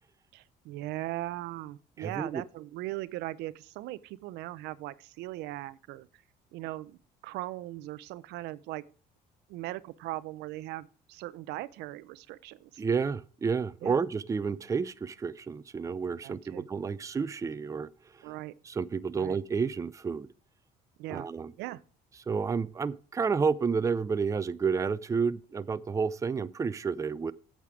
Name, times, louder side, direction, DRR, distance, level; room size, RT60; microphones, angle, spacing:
voice 1, 0.3-6.1 6.5-8.8 9.5-12.8 13.8-14.0 16.2-16.7 18.2-18.5 19.2-19.4 21.0-21.3 21.6-21.8, right 16 dB, 90° right, 0.5 m, -39 dB
voice 2, 2.0-2.4 12.8-17.9 18.7-20.3 21.1-21.5 22.3-27.3, right 5 dB, 20° right, 0.4 m, -30 dB
8.3 x 7.5 x 4.8 m
cardioid pair, 110°, 17 cm